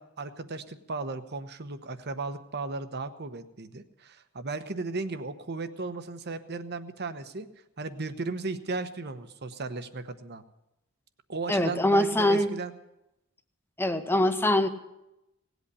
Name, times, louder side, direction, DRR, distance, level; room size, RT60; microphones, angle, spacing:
voice 1, 0.0-7.5 7.8-10.4 11.3-12.7, right 3 dB, 50° right, 10 dB, 1.0 m, -35 dB
voice 2, 11.5-12.5 13.8-14.7, left 1 dB, 10° left, 9 dB, 0.9 m, -23 dB
18.0 x 8.3 x 8.4 m, 0.89 s
head